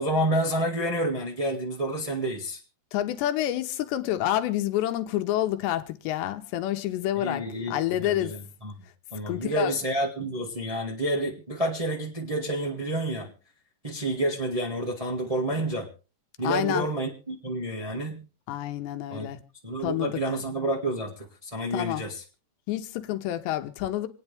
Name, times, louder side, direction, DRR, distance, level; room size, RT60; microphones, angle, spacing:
voice 1, 0.0-2.6 7.1-8.7 9.1-13.3 13.8-15.9 16.4-18.2 19.1-19.3 19.6-22.2, right 1 dB, 70° right, 0.3 m, -29 dB
voice 2, 2.9-8.4 9.3-9.7 16.4-16.9 18.5-19.4 19.8-20.1 21.7-22.0 22.7-24.1, left 13 dB, 80° left, 3.1 m, -28 dB
27.5 x 9.5 x 3.5 m
omnidirectional pair, 5.1 m